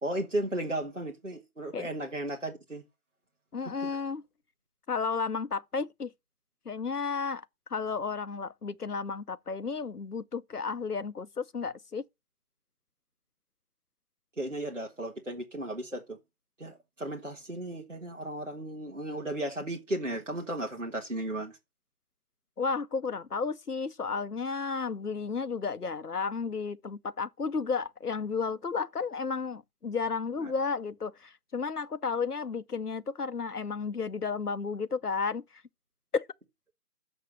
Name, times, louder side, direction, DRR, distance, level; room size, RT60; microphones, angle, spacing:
voice 1, 0.0-2.8 3.8-3.9 14.4-16.2 16.6-21.5 30.4-30.5, right 1 dB, 55° right, 1.5 m, -35 dB
voice 2, 3.5-4.2 4.9-6.1 6.7-7.4 7.7-12.1 22.6-35.4 36.1-36.3, left 5 dB, 85° left, 0.8 m, -32 dB
7.0 x 6.6 x 6.4 m
figure-of-eight pair, 180°, 45 cm